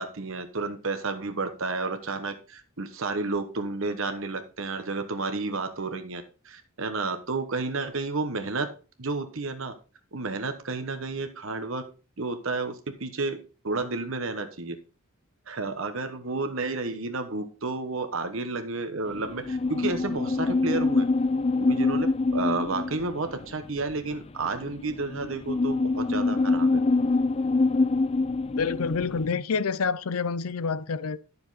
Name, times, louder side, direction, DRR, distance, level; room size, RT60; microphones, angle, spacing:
voice 1, 0.0-8.7 9.0-9.7 10.1-11.8 12.2-13.4 13.6-14.8 15.5-21.1 21.6-26.8, right 3 dB, 65° right, 1.1 m, -31 dB
sound 1, 19.1-29.3, left 3 dB, 30° left, 0.4 m, -25 dB
voice 2, 28.6-31.2, left 5 dB, 80° left, 0.6 m, -27 dB
10.5 x 7.0 x 4.0 m
head